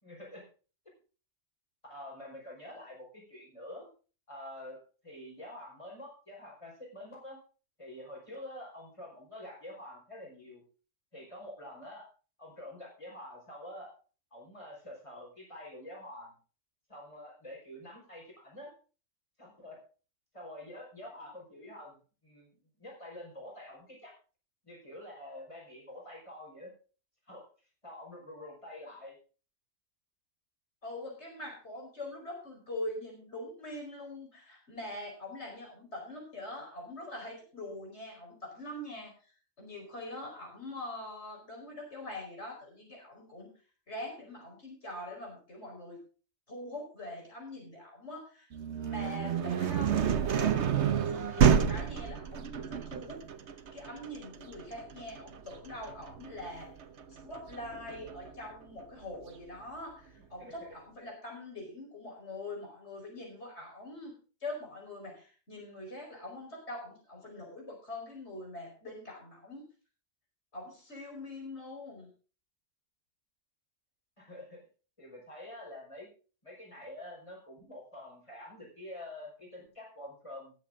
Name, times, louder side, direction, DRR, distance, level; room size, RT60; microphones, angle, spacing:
voice 1, 0.0-0.4 1.9-3.9 4.3-4.8 5.0-7.4 7.8-10.6 11.1-12.1 12.4-13.9 14.3-16.4 16.9-18.7 19.4-19.8 20.3-22.0 22.2-24.1 24.6-26.7 27.3-27.5 27.8-29.2 60.4-60.7 74.2-74.6 75.0-76.1 76.4-80.5, left 1 dB, 30° left, -1 dB, 5.3 m, -47 dB
voice 2, 30.8-43.5 43.9-46.0 46.5-56.7 57.1-69.7 70.5-72.1, left 1 dB, 75° left, -1 dB, 5.1 m, -43 dB
sound 1, 48.5-58.3, right 8 dB, 80° right, 1.2 m, -29 dB
19.5 x 7.6 x 3.8 m, 0.37 s
omnidirectional pair, 1.2 m